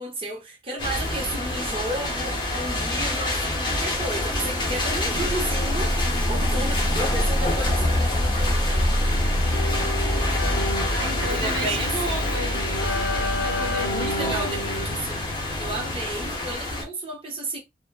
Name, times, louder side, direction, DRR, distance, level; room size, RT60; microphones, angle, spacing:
voice 1, 0.0-6.0 6.3-8.9 11.3-12.3 13.7-15.3 15.6-17.6, right 2 dB, 30° right, 0.8 m, -33 dB
sound 1, 0.8-16.8, left 1 dB, 25° left, 0.8 m, -25 dB
Keyboard (musical), 9.0-16.3, left 1 dB, 80° left, 0.5 m, -32 dB
voice 2, 10.9-12.6 13.3-14.6, right 1 dB, 85° right, 0.7 m, -33 dB
2.8 x 2.1 x 2.2 m
head